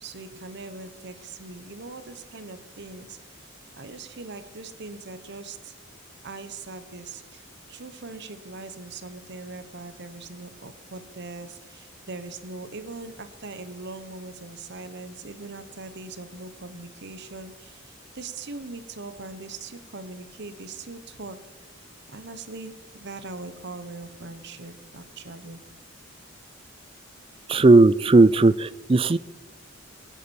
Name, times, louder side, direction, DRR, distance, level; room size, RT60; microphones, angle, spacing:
voice 1, 0.0-3.2 3.7-5.7 6.2-7.4 7.7-21.4 22.1-25.6, right 3 dB, 55° right, 11 dB, 1.1 m, -41 dB
voice 2, 27.5-29.2, right 3 dB, 25° right, 17 dB, 0.4 m, -16 dB
21.0 x 8.5 x 7.1 m, 1.3 s
head